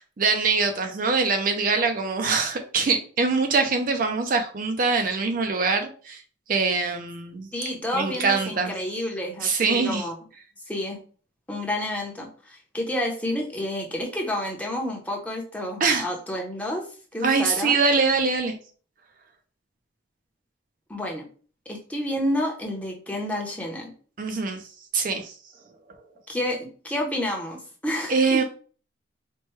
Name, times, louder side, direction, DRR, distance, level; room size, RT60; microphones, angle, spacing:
voice 1, 0.0-6.2 6.5-7.5 7.9-8.7 9.4-10.1 15.8-16.1 17.2-18.6 24.2-24.6 24.9-25.4 28.1-28.4, right 4 dB, 45° right, 5 dB, 0.4 m, -23 dB
voice 2, 7.5-10.1 10.7-11.0 11.5-16.9 17.1-17.8 20.9-21.3 21.7-23.9 26.3-28.4, left 1 dB, 5° left, 0 dB, 0.7 m, -30 dB
4.4 x 2.2 x 3.1 m, 0.41 s
head